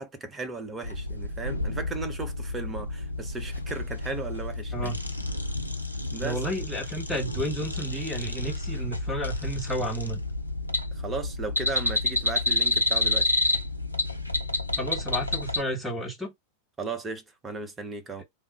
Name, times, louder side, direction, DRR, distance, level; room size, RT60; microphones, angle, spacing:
voice 1, 0.0-5.0 6.1-6.4 10.9-13.3 16.8-18.2, right 3 dB, 15° right, 0.7 m, -36 dB
sound 1, 0.8-15.6, left 2 dB, 90° left, 0.4 m, -30 dB
voice 2, 6.2-10.2 14.8-16.3, right 1 dB, ahead, 1.2 m, -32 dB
3.5 x 2.1 x 4.1 m
figure-of-eight pair, 90°, 0 cm